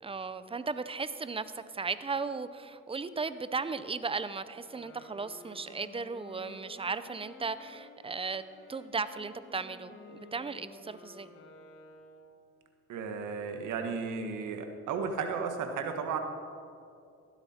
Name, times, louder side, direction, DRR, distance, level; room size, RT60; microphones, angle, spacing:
voice 1, 0.0-8.4 8.7-11.3, right 4 dB, 20° right, 13 dB, 0.6 m, -36 dB
Wind instrument woodwind instrument, 4.6-12.5, left 2 dB, 40° left, 2.4 m, -53 dB
voice 2, 12.9-16.2, right 5 dB, 85° right, 5 dB, 1.5 m, -34 dB
15.0 x 12.0 x 4.4 m, 2.4 s
cardioid pair, 90°, 30 cm